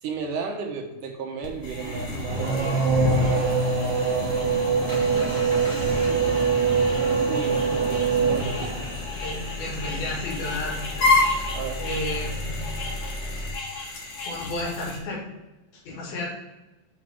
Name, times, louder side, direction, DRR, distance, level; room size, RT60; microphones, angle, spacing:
voice 1, 0.0-3.5 7.2-8.9 11.5-11.9, right 5 dB, 70° right, 2 dB, 2.4 m, -34 dB
sound 1, 1.4-15.0, left 2 dB, 50° left, 2.2 m, -31 dB
Race car auto racing / Accelerating revving vroom, 1.8-9.1, right 4 dB, 35° right, 2.4 m, -24 dB
Engine, 4.5-13.5, left 1 dB, 20° left, 1.3 m, -36 dB
voice 2, 9.2-12.8 13.7-15.2 15.7-16.3, left 1 dB, 85° left, -2 dB, 4.0 m, -33 dB
7.5 x 5.2 x 6.0 m, 1.1 s
omnidirectional pair, 4.2 m